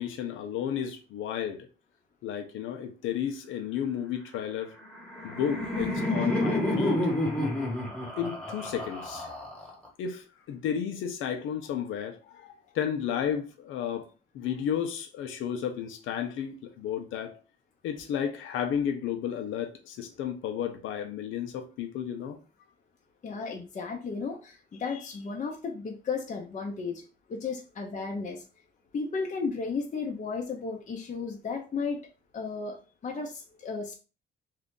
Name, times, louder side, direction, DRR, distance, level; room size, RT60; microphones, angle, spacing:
voice 1, 0.0-1.7 2.2-4.7 5.2-7.0 8.2-9.4 10.0-14.1 14.3-17.4 17.8-22.4, left 8 dB, 90° left, 0.7 m, -32 dB
Laughter, 4.8-9.9, left 1 dB, 5° left, 1.2 m, -29 dB
voice 2, 23.2-27.0 27.3-28.4 28.9-32.0 32.3-32.8 33.0-33.9, left 4 dB, 40° left, 0.7 m, -34 dB
2.8 x 2.5 x 3.6 m
cardioid pair, 90°, 20 cm